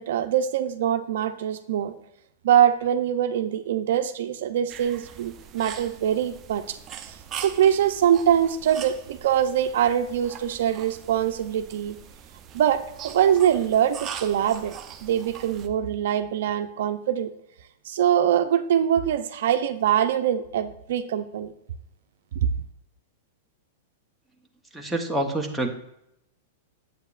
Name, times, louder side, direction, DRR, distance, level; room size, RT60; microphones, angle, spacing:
voice 1, 0.0-1.9 2.4-6.8 7.4-12.0 12.5-14.7 15.0-17.3 17.8-21.5 22.3-22.5, right 10 dB, 70° right, 8 dB, 0.5 m, -23 dB
sound 1, 4.7-15.7, right 8 dB, 25° right, 0.6 m, -42 dB
voice 2, 24.7-25.7, right 1 dB, ahead, -1 dB, 0.8 m, -27 dB
7.9 x 7.7 x 2.4 m, 0.80 s
hypercardioid pair, 145°, 0 cm